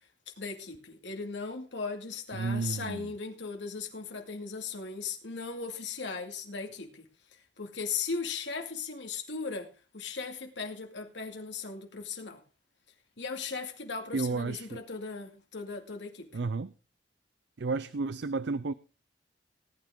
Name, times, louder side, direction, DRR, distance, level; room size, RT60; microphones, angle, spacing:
voice 1, 0.4-7.1 7.6-12.4 13.2-16.3, left 4 dB, 75° left, 2.4 m, -37 dB
voice 2, 2.3-3.1 14.1-14.8 16.3-16.7 17.6-18.7, right 4 dB, 65° right, 0.5 m, -32 dB
18.5 x 9.4 x 3.7 m
head